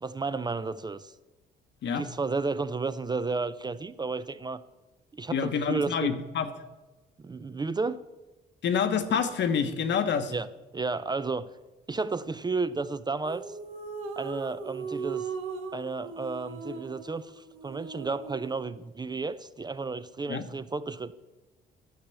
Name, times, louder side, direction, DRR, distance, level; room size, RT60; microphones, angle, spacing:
voice 1, 0.0-1.1 2.0-4.6 5.2-6.1 7.2-8.0 10.3-10.5 10.7-11.5 11.9-13.5 14.2-15.3 15.7-21.1, right 4 dB, 20° right, 14 dB, 0.4 m, -32 dB
voice 2, 5.3-6.5 8.6-10.3 20.3-20.4, left 7 dB, 65° left, 9 dB, 1.0 m, -27 dB
sound 1, 13.3-18.6, right 5 dB, 90° right, 1.1 m, -38 dB
10.5 x 6.6 x 6.9 m, 1.1 s
cardioid pair, 90°, 20 cm